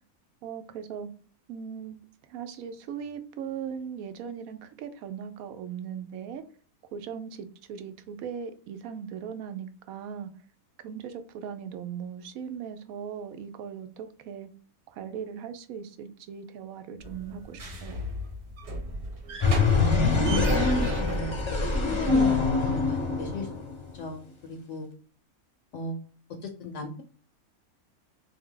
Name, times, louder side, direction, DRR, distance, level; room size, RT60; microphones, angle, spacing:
voice 1, 0.4-1.1 1.5-2.0 2.3-6.4 6.9-10.3 10.8-14.5 14.9-18.0, right 7 dB, 75° right, 1.0 m, -39 dB
sound 1, 17.0-22.1, right 1 dB, 55° right, 1.1 m, -39 dB
sound 2, 19.4-23.9, left 3 dB, 30° left, 0.5 m, -24 dB
voice 2, 19.7-22.4 22.6-23.5 23.9-24.9 25.7-26.0 26.4-27.0, left 2 dB, 65° left, 0.8 m, -34 dB
3.4 x 2.7 x 3.7 m
omnidirectional pair, 1.5 m